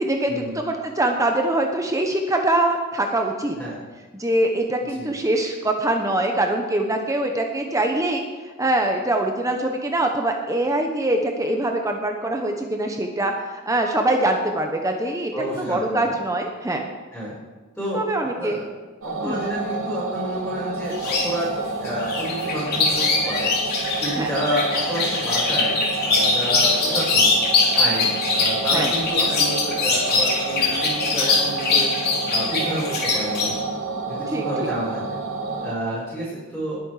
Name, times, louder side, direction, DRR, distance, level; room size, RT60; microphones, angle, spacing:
voice 1, 0.0-3.6 4.1-8.2 8.6-16.9 17.9-18.6 19.2-19.6 24.2-24.3 28.7-28.9 34.3-34.7, right 1 dB, 15° right, 3 dB, 1.0 m, -23 dB
voice 2, 15.3-16.2 17.1-17.3 17.7-18.0 18.4-18.6 19.0-21.5 21.8-23.5 24.0-25.8 26.0-27.3 27.7-31.9 32.3-33.7 34.0-35.0 35.6-36.8, equal, 5° left, -10 dB, 5.4 m, -29 dB
sound 1, 19.0-35.8, right 3 dB, 90° right, 2.1 m, -30 dB
sound 2, 20.9-21.3 21.8-33.5, left 3 dB, 50° left, 3.4 m, -22 dB
20.5 x 8.5 x 5.0 m, 1.3 s
head